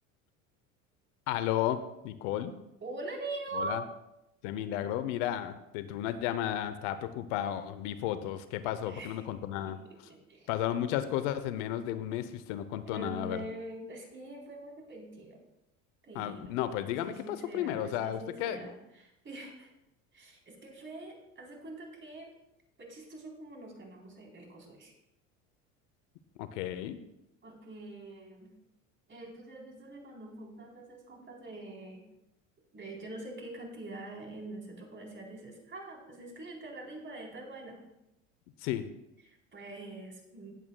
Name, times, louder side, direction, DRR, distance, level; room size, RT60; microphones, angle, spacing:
voice 1, 1.3-2.5 3.5-3.8 4.4-9.8 10.5-13.4 16.1-18.6 26.4-27.0 38.6-38.9, left 11 dB, 70° left, 12 dB, 0.8 m, -33 dB
voice 2, 2.8-3.8 8.8-9.3 9.6-10.5 12.9-15.4 16.0-16.5 17.0-19.7 20.1-22.3 22.8-24.9 27.4-28.5 29.1-32.0 32.7-37.8 39.3-40.5, right 2 dB, 30° right, 0 dB, 3.8 m, -44 dB
18.0 x 8.3 x 2.3 m, 0.87 s
hypercardioid pair, 80°, 38 cm